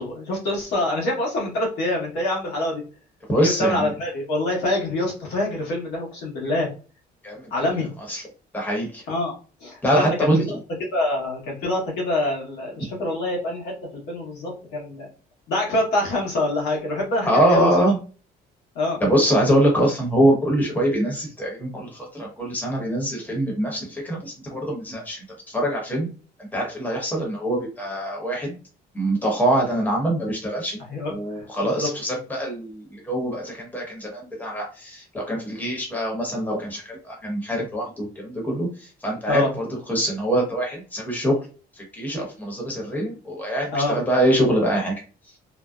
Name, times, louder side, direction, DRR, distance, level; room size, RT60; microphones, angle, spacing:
voice 1, 0.0-2.8 3.4-6.7 7.5-7.9 9.1-9.3 9.6-10.5 10.9-15.1 15.5-17.7 18.7-19.0 30.8-31.9 39.3-39.5 43.7-44.0, left 1 dB, 80° left, -2 dB, 1.1 m, -26 dB
voice 2, 3.3-3.9 7.2-7.5 8.1-8.2 8.5-9.0 9.8-10.6 17.2-18.0 19.0-26.1 26.5-28.6 28.9-30.8 31.1-41.4 41.8-44.9, right 1 dB, 10° left, -1 dB, 1.0 m, -24 dB
2.6 x 2.0 x 2.3 m, 0.36 s
cardioid pair, 110°, 17 cm